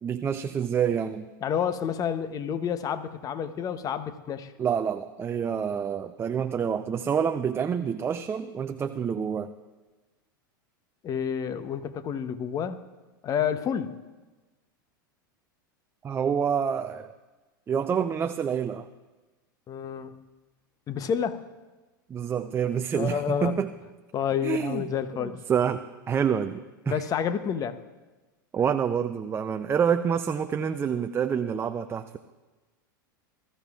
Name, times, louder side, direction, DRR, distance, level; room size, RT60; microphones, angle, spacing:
voice 1, 0.0-1.3 4.6-9.5 16.0-17.1 17.7-18.9 22.1-23.7 24.4-24.8 25.2-25.8 26.1-27.0 28.5-32.2, right 7 dB, 20° right, 8 dB, 0.4 m, -27 dB
voice 2, 1.4-4.5 11.0-12.8 13.2-14.0 19.7-20.2 20.9-21.4 22.9-23.5 24.1-25.4 26.9-27.8, left 8 dB, 30° left, 12 dB, 0.8 m, -29 dB
20.0 x 13.5 x 2.4 m, 1.2 s
hypercardioid pair, 100°, 11 cm